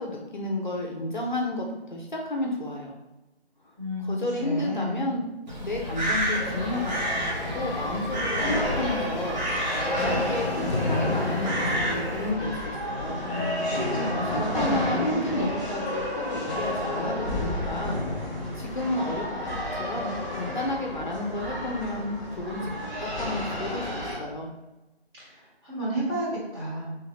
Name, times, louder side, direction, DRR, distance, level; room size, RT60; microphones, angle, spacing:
voice 1, 0.0-2.9 4.0-5.2 5.6-7.2 7.5-13.2 14.3-18.0 18.6-22.7 23.0-24.5, left 1 dB, 50° left, 0 dB, 0.5 m, -32 dB
voice 2, 3.8-5.1 13.2-15.2 25.2-25.4 25.6-27.0, equal, 25° right, -10 dB, 1.4 m, -32 dB
Crow, 5.5-12.3, right 1 dB, 45° right, 0.8 m, -31 dB
sound 1, 6.3-24.2, left 1 dB, ahead, 1.2 m, -30 dB
3.7 x 2.8 x 2.8 m, 1.0 s
figure-of-eight pair, 155°, 32 cm